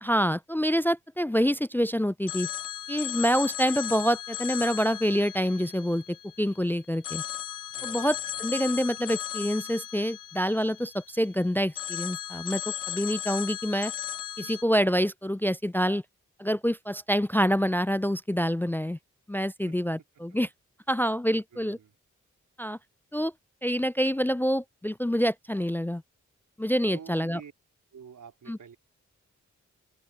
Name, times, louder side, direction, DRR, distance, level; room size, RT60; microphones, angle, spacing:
voice 1, 0.0-2.5 2.9-7.2 7.8-13.9 14.4-16.0 16.4-19.0 19.3-20.5 20.9-21.8 22.6-22.8 23.1-23.3 23.6-26.0 26.6-27.4 28.5-28.6, equal, 5° left, 0.3 m, -27 dB
Telephone, 2.3-6.6 7.0-11.3 11.8-14.6, left 11 dB, 85° left, 0.7 m, -36 dB
voice 2, 7.8-8.4 19.7-19.8 21.5-21.9 26.9-27.5 27.9-28.8, right 7 dB, 75° right, 4.0 m, -48 dB
open air
supercardioid pair, 45°, 31 cm